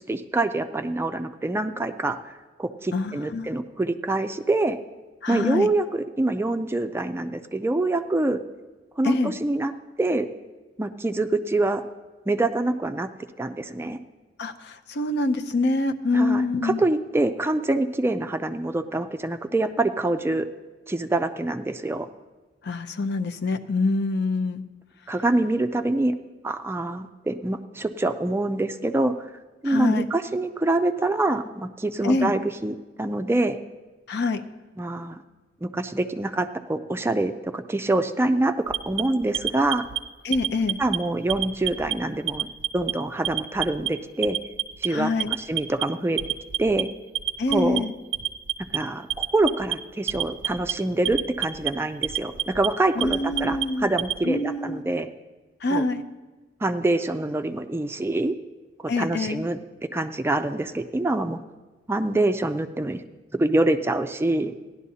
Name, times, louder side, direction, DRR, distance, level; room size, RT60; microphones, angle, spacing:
voice 1, 0.1-2.3 2.6-4.8 5.3-8.4 9.0-9.1 9.4-9.7 10.0-10.3 10.8-11.8 12.3-13.1 13.4-14.0 16.1-20.5 20.9-22.1 25.1-26.1 26.4-29.3 29.6-33.6 34.8-35.2 35.6-39.9 40.8-44.4 44.8-45.1 45.5-46.2 46.6-46.9 47.5-47.8 48.7-55.1 55.7-55.8 56.6-58.3 58.8-59.6 59.9-61.4 61.9-63.0 63.3-64.6, right 2 dB, 15° right, 8 dB, 0.3 m, -25 dB
voice 2, 2.9-3.5 5.2-5.7 9.0-9.3 14.4-16.8 22.6-24.6 29.6-30.0 32.0-32.3 34.1-34.4 40.2-40.8 44.9-45.4 47.4-47.9 53.0-53.9 54.2-54.8 55.6-56.0 58.9-59.4, left 2 dB, 65° left, 7 dB, 0.6 m, -25 dB
Alarm, 38.7-40.0 40.3-41.0 41.3-41.9 42.3-42.9 43.2-43.9 44.2-44.9 45.2-45.8 46.2-46.8 47.2-47.8 48.1-48.8 49.1-49.7 50.1-50.7 51.1-51.7 52.0-52.7 53.0-54.2, right 11 dB, 75° right, 0.5 m, -27 dB
16.5 x 11.0 x 2.8 m, 1.2 s
head